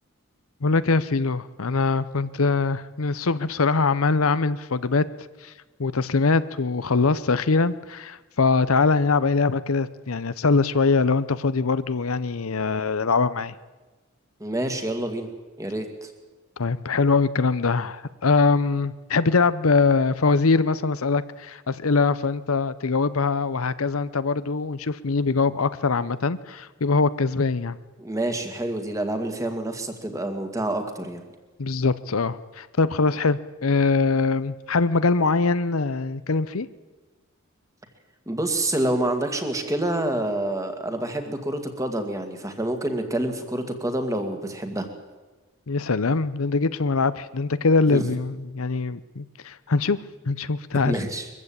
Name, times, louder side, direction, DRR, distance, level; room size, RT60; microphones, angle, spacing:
voice 1, 0.6-5.0 5.4-5.5 5.8-13.5 16.6-27.8 31.6-36.7 45.7-50.0 50.3-51.0, left 4 dB, 90° left, 15 dB, 0.8 m, -22 dB
voice 2, 14.4-15.3 15.6-16.1 28.0-31.2 38.3-44.9 47.9-48.0 50.8-51.3, right 1 dB, 15° right, 6 dB, 2.1 m, -27 dB
22.5 x 15.0 x 8.8 m, 1.2 s
head